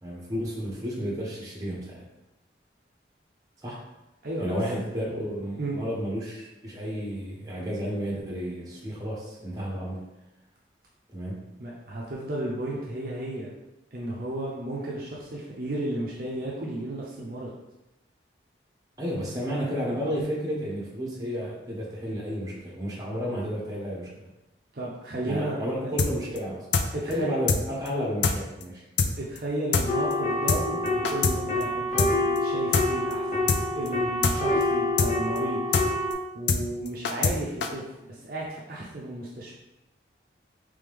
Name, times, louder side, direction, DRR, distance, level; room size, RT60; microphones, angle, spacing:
voice 1, 0.0-2.0 3.6-3.8 4.4-10.0 11.1-11.4 19.0-24.3 25.2-28.8, equal, 20° right, -5 dB, 1.0 m, -32 dB
voice 2, 11.6-13.5 13.9-17.5 24.7-25.9 26.9-27.3 29.2-33.2 33.7-35.6 36.3-39.6, right 1 dB, 50° right, -4 dB, 0.6 m, -33 dB
sound 1, 26.0-26.1 26.4-26.5 26.7-26.9 27.1-27.2 27.5-27.6 27.9-28.0 28.2-28.4 28.6-28.7 29.0-29.1 29.4-29.5 29.7-29.9 30.1-30.2 30.5-30.6 30.9-31.4 31.6-31.7 32.0-32.1 32.4-32.5 32.7-32.9 33.1-33.2 33.5-33.6 33.9-34.0 34.2-34.4 34.6-34.7 35.0-35.1 35.4-35.5 35.7-35.9 36.1-36.2 36.5-36.6 36.9-37.4 37.6-37.7, left 5 dB, 70° left, 0.4 m, -23 dB
sound 2, 29.9-36.1, left 1 dB, 40° left, 0.7 m, -27 dB
3.5 x 3.4 x 3.4 m, 0.95 s
head